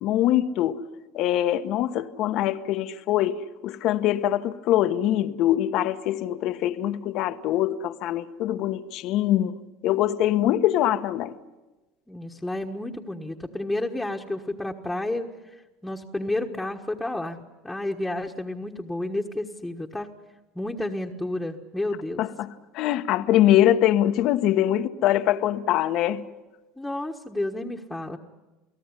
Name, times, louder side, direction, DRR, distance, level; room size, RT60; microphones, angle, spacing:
voice 1, 0.0-0.8 1.1-9.5 9.8-11.3 22.2-22.5 22.7-26.2, left 12 dB, 55° left, 1.2 m, -23 dB
voice 2, 12.1-17.4 17.6-20.1 20.5-22.2 26.8-28.2, left 1 dB, 5° left, 1.4 m, -31 dB
29.0 x 18.0 x 9.9 m
supercardioid pair, 135°, 0 cm